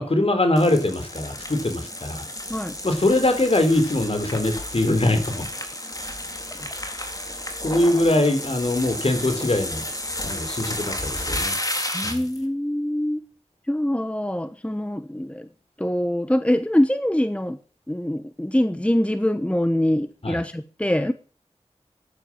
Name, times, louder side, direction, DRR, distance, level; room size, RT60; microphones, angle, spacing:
voice 1, 0.0-2.3 2.8-5.4 7.6-9.9 10.2-12.3 20.2-20.4, left 1 dB, 55° left, 7 dB, 3.8 m, -22 dB
sound 1, 0.6-12.4, left 1 dB, 30° left, 3.8 m, -32 dB
voice 2, 11.9-13.2 13.7-15.5 15.8-17.6 17.9-21.1, left 1 dB, 10° left, 11 dB, 1.1 m, -24 dB
15.0 x 11.0 x 7.4 m, 0.38 s
wide cardioid pair, 65°, 12 cm